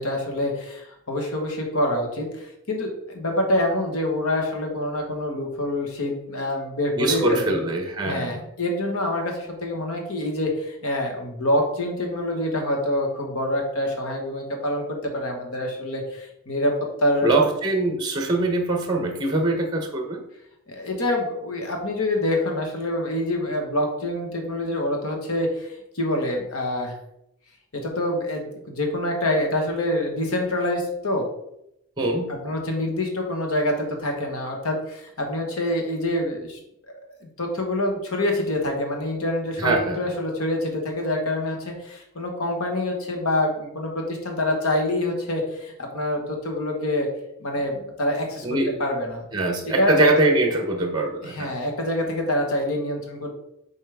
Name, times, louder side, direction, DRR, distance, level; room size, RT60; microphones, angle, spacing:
voice 1, 0.0-7.6 8.1-17.4 20.7-26.9 27.7-31.2 32.3-36.6 37.4-47.1 47.4-49.2 49.6-50.0 51.2-53.3, left 1 dB, 70° left, 2 dB, 1.4 m, -26 dB
voice 2, 7.0-8.3 17.2-20.2 32.0-32.4 39.6-40.0 48.4-48.8 49.3-51.5, right 2 dB, 20° right, 3 dB, 0.8 m, -23 dB
7.2 x 4.2 x 3.5 m, 0.80 s
head